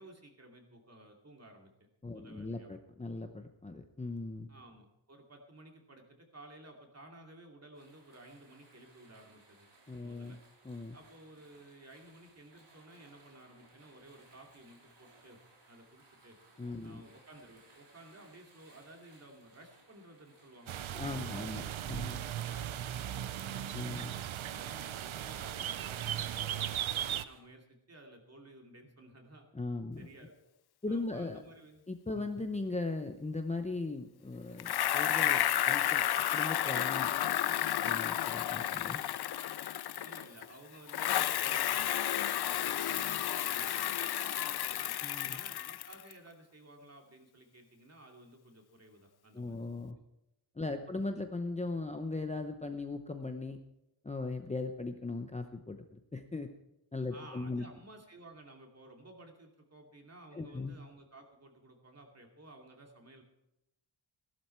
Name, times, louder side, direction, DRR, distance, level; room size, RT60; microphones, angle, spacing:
voice 1, 0.0-1.9 2.1-2.7 4.5-9.7 10.0-10.4 10.9-15.4 15.7-16.4 16.8-23.7 24.0-29.4 30.0-30.3 30.9-31.8 32.2-32.3 40.0-44.9 45.3-50.0 50.7-51.0 57.1-63.2, right 1 dB, 35° right, 2 dB, 2.6 m, -55 dB
voice 2, 2.0-4.5 9.9-10.4 10.6-11.0 16.6-17.0 20.9-22.2 23.7-24.1 29.5-30.1 30.8-31.4 31.9-36.0 36.3-37.1 37.8-39.0 45.0-45.4 49.3-50.0 50.6-53.6 54.0-56.5 56.9-57.6 60.3-60.7, left 3 dB, 15° left, 5 dB, 0.7 m, -38 dB
sound 1, 7.7-27.4, right 2 dB, 60° right, 3.8 m, -63 dB
sound 2, 20.7-27.2, right 11 dB, 90° right, 0.7 m, -37 dB
Bicycle, 34.6-40.5 40.9-46.1, left 11 dB, 55° left, 0.5 m, -32 dB
15.5 x 12.0 x 4.5 m, 0.88 s
wide cardioid pair, 160°, 46 cm